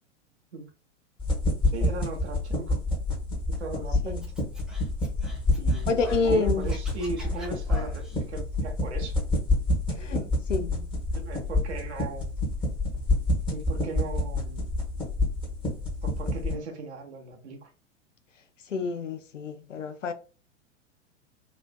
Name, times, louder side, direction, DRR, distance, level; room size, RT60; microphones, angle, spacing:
sound 1, 1.2-16.5, left 2 dB, 15° left, 1.1 m, -28 dB
voice 1, 1.7-2.8 3.6-4.2 5.6-9.2 9.9-10.3 11.1-12.3 13.5-14.8 16.0-17.7, right 3 dB, 60° right, 0.8 m, -38 dB
Scratching (performance technique), 4.2-6.3 6.6-8.2, left 1 dB, ahead, 0.5 m, -45 dB
voice 2, 5.9-6.7 10.0-10.2 10.5-10.9 18.7-20.1, left 4 dB, 80° left, 0.5 m, -28 dB
3.0 x 2.5 x 2.2 m
figure-of-eight pair, 95°, 37 cm